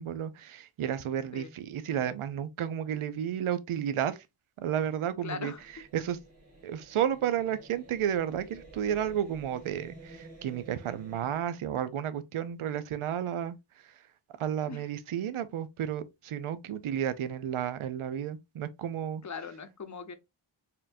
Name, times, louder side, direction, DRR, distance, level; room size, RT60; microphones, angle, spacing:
voice 1, 0.0-4.2 4.6-5.5 5.9-6.2 6.6-13.6 13.8-13.9 14.4-19.2, right 9 dB, 80° right, 0.6 m, -32 dB
voice 2, 5.2-5.6 14.7-14.9 19.2-20.1, left 5 dB, 35° left, 0.7 m, -40 dB
sound 1, 5.5-11.4, right 2 dB, 30° right, 1.8 m, -51 dB
4.4 x 3.7 x 2.5 m
wide cardioid pair, 95°, 49 cm